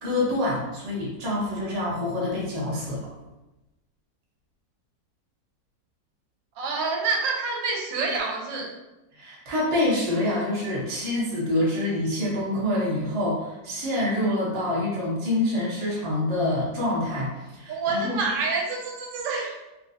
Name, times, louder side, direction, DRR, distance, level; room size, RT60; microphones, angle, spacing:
voice 1, 0.0-3.1 9.1-18.2, left 1 dB, 45° right, -6 dB, 0.4 m, -26 dB
voice 2, 6.6-8.7 17.7-19.6, right 4 dB, 80° right, 1 dB, 1.2 m, -27 dB
3.5 x 2.2 x 2.6 m, 1.0 s
omnidirectional pair, 2.1 m